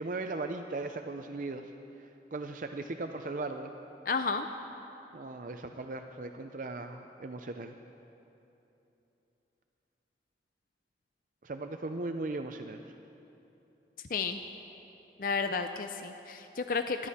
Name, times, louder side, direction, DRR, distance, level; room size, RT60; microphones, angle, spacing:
voice 1, 0.0-1.7 2.0-3.7 5.1-7.8 11.4-12.9, right 2 dB, 45° right, 6 dB, 0.5 m, -38 dB
voice 2, 4.1-4.5 14.1-14.4 15.2-17.1, left 4 dB, 50° left, 8 dB, 0.5 m, -32 dB
26.0 x 11.0 x 4.3 m, 3.0 s
head